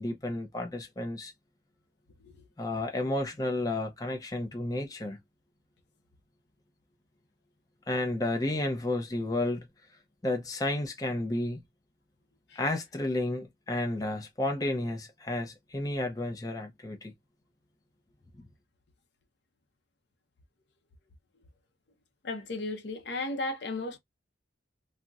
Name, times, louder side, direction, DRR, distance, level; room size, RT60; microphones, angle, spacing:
voice 1, 0.0-1.3 2.6-5.2 7.9-9.7 10.2-11.6 12.6-17.1, left 2 dB, 20° left, 0.5 m, -31 dB
voice 2, 22.2-24.0, left 2 dB, 60° left, 0.6 m, -34 dB
3.8 x 2.0 x 2.3 m
head